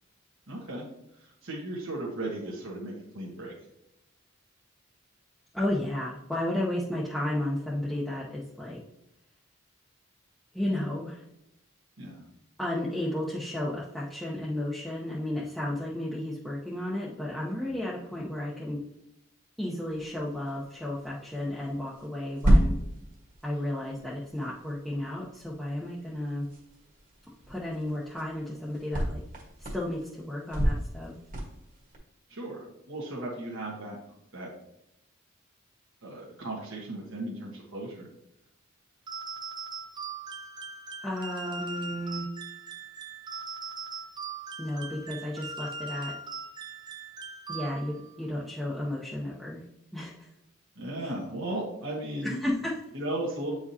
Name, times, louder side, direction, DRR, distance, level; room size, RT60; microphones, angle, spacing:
voice 1, 0.5-0.8 1.1-3.5 12.0-12.2 24.0-24.1 32.3-34.0 34.3-34.5 36.0-38.1 50.7-52.4 52.9-53.5, right 1 dB, 70° right, -4 dB, 1.3 m, -36 dB
voice 2, 5.5-8.8 10.5-11.2 12.6-18.8 19.6-22.8 23.4-26.5 27.5-29.2 29.6-31.1 41.0-42.3 44.6-46.1 47.5-49.6 49.9-50.3 51.0-51.1 52.2-52.8, left 1 dB, ahead, -7 dB, 0.8 m, -33 dB
sound 1, 19.8-32.0, equal, 40° right, 1.5 m, -32 dB
sound 2, 39.1-48.1, right 4 dB, 20° right, 0.4 m, -40 dB
8.8 x 4.8 x 2.8 m, 0.84 s
head